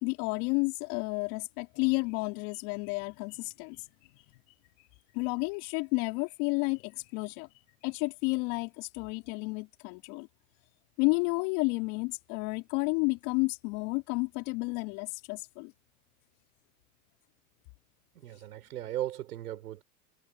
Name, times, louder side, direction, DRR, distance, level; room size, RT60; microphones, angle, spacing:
voice 1, 0.0-3.8 5.1-7.5 7.8-10.3 11.0-15.7, left 30 dB, 65° left, 3.6 m, -31 dB
voice 2, 18.1-19.8, right 13 dB, 90° right, 6.5 m, -37 dB
hypercardioid pair, 100°, 45 cm